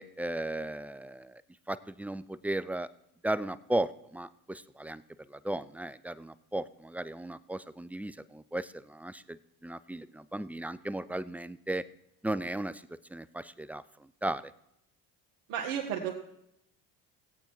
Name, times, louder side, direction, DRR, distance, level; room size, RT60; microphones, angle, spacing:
voice 1, 0.0-1.4 1.7-2.9 3.2-5.0 5.3-9.4 9.6-11.8 12.2-12.8 13.1-13.8 14.2-14.4, right 1 dB, 5° right, 16 dB, 0.3 m, -35 dB
voice 2, 15.5-16.2, right 8 dB, 70° right, 0 dB, 1.6 m, -33 dB
17.0 x 8.4 x 4.6 m, 0.81 s
hypercardioid pair, 65°, 47 cm